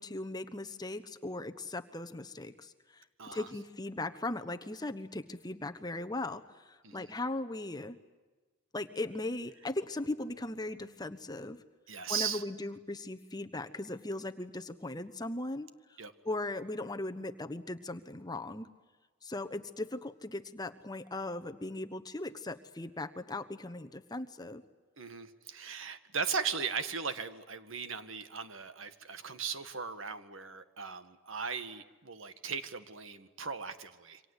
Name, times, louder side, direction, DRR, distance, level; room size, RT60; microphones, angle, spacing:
voice 1, 0.0-3.0 3.3-8.0 8.7-11.6 12.1-16.0 16.2-18.7 19.2-24.6, left 2 dB, 20° left, 8 dB, 1.1 m, -38 dB
voice 2, 3.2-3.5 6.8-7.1 11.9-12.4 16.0-16.1 25.0-34.2, right 6 dB, 70° right, 10 dB, 1.8 m, -38 dB
28.0 x 25.0 x 8.2 m, 1.3 s
head